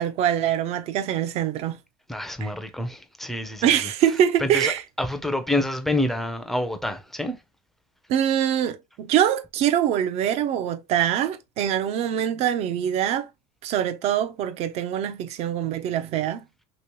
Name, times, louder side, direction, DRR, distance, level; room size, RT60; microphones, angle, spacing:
voice 1, 0.0-1.8 2.4-2.5 3.6-4.8 8.1-13.3 13.6-16.5, right 10 dB, 50° right, 0.6 m, -24 dB
voice 2, 2.1-3.7 4.4-4.7 5.0-7.4, left 1 dB, ahead, 0.6 m, -27 dB
3.0 x 2.9 x 2.9 m
supercardioid pair, 120°, 14 cm